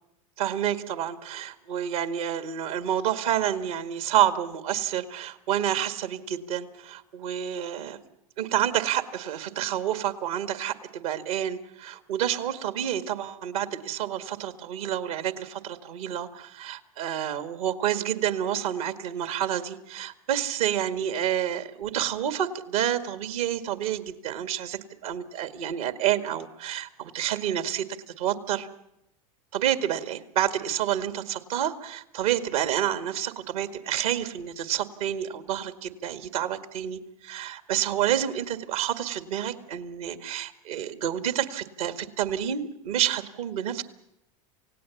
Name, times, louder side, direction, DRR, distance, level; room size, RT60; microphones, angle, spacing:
voice 1, 0.4-8.0 8.4-27.9 28.2-28.7 29.5-43.8, right 10 dB, 75° right, 9 dB, 2.0 m, -29 dB
28.5 x 17.0 x 7.2 m, 0.84 s
hypercardioid pair, 95°, 18 cm